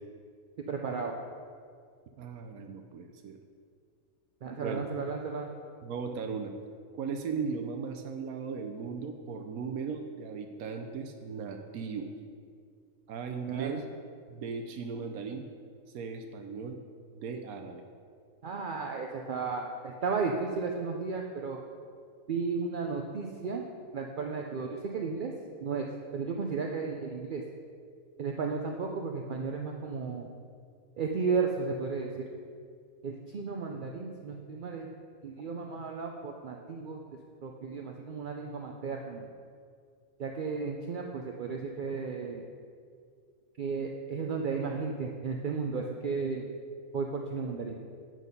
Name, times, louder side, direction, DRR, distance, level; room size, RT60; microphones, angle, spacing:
voice 1, 0.7-1.1 4.4-5.5 13.5-13.8 18.4-21.6 22.3-23.6 23.9-25.3 25.6-25.9 26.1-27.4 28.2-30.3 31.0-32.3 33.0-34.9 35.2-37.0 37.4-39.2 40.2-42.4 43.6-46.4 46.9-47.7, right 5 dB, 60° right, 2 dB, 0.5 m, -34 dB
voice 2, 2.2-3.4 4.6-4.9 5.8-6.5 6.9-12.1 13.1-13.8 14.3-15.5 15.9-16.8 17.1-17.8, right 5 dB, 80° right, 6 dB, 1.1 m, -37 dB
9.1 x 6.2 x 5.3 m, 2.1 s
omnidirectional pair, 1.5 m